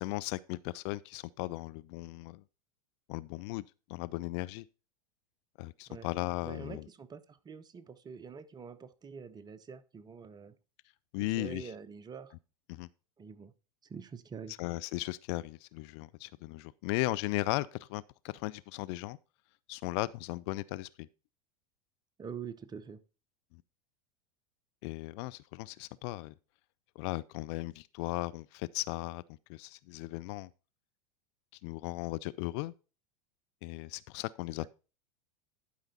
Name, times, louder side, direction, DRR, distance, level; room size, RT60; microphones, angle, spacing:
voice 1, 0.0-2.4 3.1-3.6 3.9-4.7 5.6-6.9 11.1-11.7 12.7-12.9 14.6-18.0 18.3-19.2 19.7-21.1 23.5-23.6 24.8-26.3 27.0-29.2 29.5-30.5 31.6-32.7 33.6-34.7, left 20 dB, 50° left, 0.4 m, -36 dB
voice 2, 6.4-10.5 11.3-12.3 13.2-13.5 13.9-14.6 22.2-23.0 34.6-34.7, right 6 dB, 20° right, 0.7 m, -45 dB
11.5 x 5.0 x 4.0 m
figure-of-eight pair, 90°, 18 cm